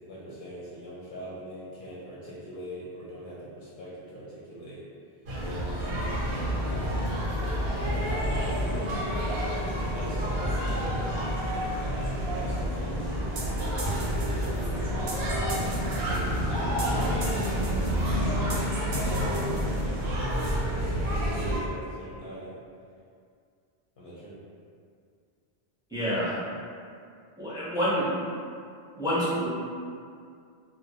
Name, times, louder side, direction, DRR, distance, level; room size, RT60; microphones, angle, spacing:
voice 1, 0.1-4.8 5.4-9.4 9.9-11.8 12.4-15.6 16.1-18.0 18.9-22.6 24.0-24.4, equal, 65° left, -9 dB, 0.7 m, -41 dB
sound 1, 5.3-21.6, equal, 85° right, 0.8 m, -29 dB
sound 2, 13.4-20.1, right 2 dB, 55° right, 0.6 m, -41 dB
voice 2, 25.9-26.4 27.4-28.1 29.0-29.5, equal, 5° right, -11 dB, 0.5 m, -27 dB
2.1 x 2.1 x 2.8 m, 2.3 s
omnidirectional pair, 1.0 m